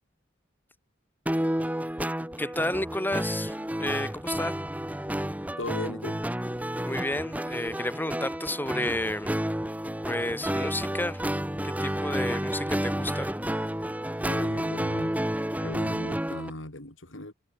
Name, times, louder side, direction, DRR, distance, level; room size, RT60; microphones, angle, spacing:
sound 1, 1.3-16.5, equal, 10° right, 2.4 m, -30 dB
voice 1, 2.4-3.5 3.8-4.6 6.8-9.4 10.1-11.2 11.6-13.3, left 1 dB, 10° left, 6.2 m, -31 dB
voice 2, 5.6-6.2 14.2-15.2 15.6-17.3, left 1 dB, 85° left, 4.7 m, -38 dB
head